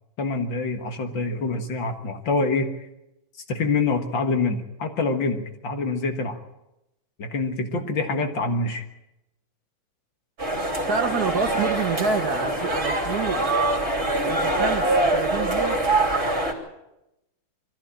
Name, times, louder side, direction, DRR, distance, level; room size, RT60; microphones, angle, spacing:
voice 1, 0.2-2.7 3.5-6.4 7.2-8.8, left 3 dB, 60° left, 6 dB, 2.3 m, -26 dB
sound 1, 10.4-16.5, right 2 dB, 30° right, 3.1 m, -24 dB
voice 2, 10.9-13.4 14.3-15.8, right 5 dB, 50° right, 6 dB, 1.5 m, -28 dB
22.0 x 14.0 x 8.7 m, 0.89 s
omnidirectional pair, 2.4 m